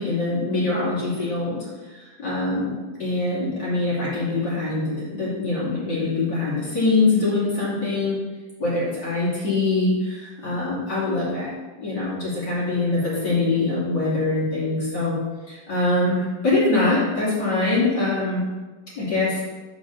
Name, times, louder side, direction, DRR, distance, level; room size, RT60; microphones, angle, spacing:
voice 1, 0.0-1.6 1.9-2.7 3.0-8.2 8.6-11.5 11.8-15.2 15.5-18.4 18.9-19.4, left 2 dB, 30° left, -8 dB, 2.7 m, -23 dB
6.5 x 4.8 x 6.8 m, 1.2 s
omnidirectional pair, 4.2 m